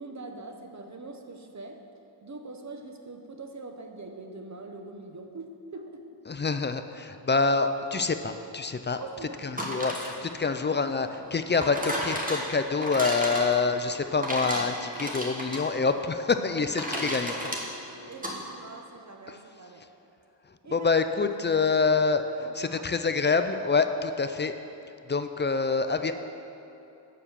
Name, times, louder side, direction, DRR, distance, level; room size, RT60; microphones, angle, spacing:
voice 1, 0.0-1.8 2.2-6.2 9.0-9.5 13.2-13.6 18.0-19.9 20.6-20.9 21.5-21.7 22.2-22.9, right 3 dB, 35° right, 5 dB, 0.8 m, -43 dB
voice 2, 6.3-9.0 9.4-17.4 19.3-19.4 20.7-22.2 22.5-24.5 25.1-26.1, left 4 dB, 25° left, 9 dB, 0.3 m, -26 dB
sound 1, 9.4-18.4, equal, 15° right, 1.3 m, -34 dB
7.3 x 4.6 x 6.7 m, 2.9 s
cardioid pair, 55°, 47 cm